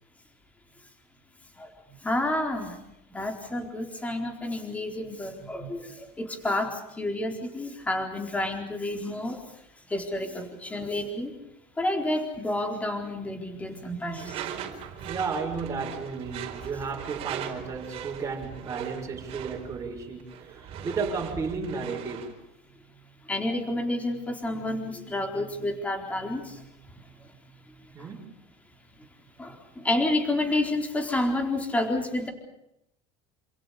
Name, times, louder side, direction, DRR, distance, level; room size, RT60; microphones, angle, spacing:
voice 1, 2.0-2.8 3.1-9.4 9.9-11.4 11.8-14.5 23.3-26.7 27.0-27.3 28.0-28.1 29.4-32.3, left 1 dB, 10° left, 4.2 m, -30 dB
Door / Screech, 14.1-22.4, right 9 dB, 40° right, 4.4 m, -39 dB
voice 2, 15.0-22.3 27.9-28.4, right 4 dB, 20° right, 6.3 m, -33 dB
28.5 x 27.5 x 5.1 m
cardioid pair, 160°, 15 cm